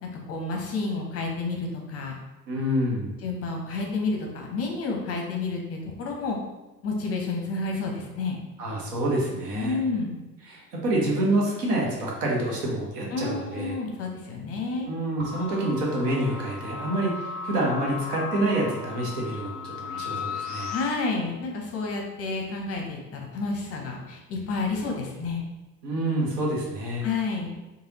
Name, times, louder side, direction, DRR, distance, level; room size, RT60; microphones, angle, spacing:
voice 1, 0.0-2.1 3.2-6.4 6.8-8.4 9.5-10.2 13.1-14.9 20.7-25.4 27.0-27.6, left 3 dB, 30° left, 0 dB, 0.6 m, -30 dB
voice 2, 2.5-3.1 8.6-9.8 10.4-13.8 14.8-20.7 25.8-27.1, right 1 dB, 70° right, -2 dB, 0.9 m, -27 dB
sound 1, 15.2-20.9, left 5 dB, 35° right, 0.8 m, -36 dB
3.2 x 2.3 x 2.8 m, 1.1 s
figure-of-eight pair, 65°, 48 cm